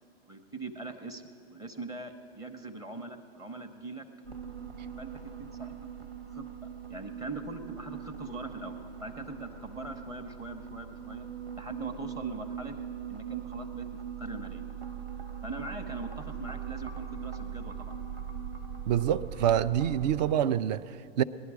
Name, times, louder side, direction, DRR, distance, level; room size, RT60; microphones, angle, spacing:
voice 1, 0.3-1.2 1.5-4.1 5.0-5.1 5.4-5.7 6.3-6.5 6.9-11.2 11.5-12.8 13.1-13.9 14.2-14.6 15.4-17.9, right 3 dB, 10° right, 0.7 m, -41 dB
sound 1, 4.2-20.3, right 8 dB, 85° right, 1.4 m, -41 dB
voice 2, 18.9-21.2, right 10 dB, 45° right, 0.4 m, -26 dB
19.0 x 11.0 x 4.8 m
hypercardioid pair, 130°, 31 cm